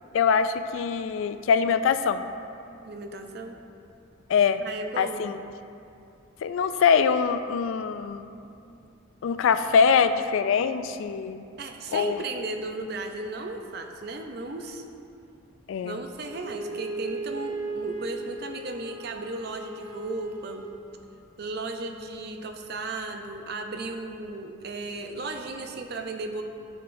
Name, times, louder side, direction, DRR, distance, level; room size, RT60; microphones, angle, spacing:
voice 1, 0.1-2.2 4.3-4.6 5.0-5.4 6.4-8.2 9.2-11.4 11.9-12.2 15.7-16.0, left 6 dB, 75° left, 11 dB, 0.3 m, -23 dB
voice 2, 2.9-3.6 4.6-5.3 11.6-14.8 15.8-20.7 21.4-26.4, right 2 dB, 50° right, 4 dB, 0.5 m, -35 dB
Wind instrument woodwind instrument, 16.2-20.7, right 2 dB, 90° right, 1.0 m, -36 dB
9.4 x 6.8 x 2.6 m, 2.6 s
head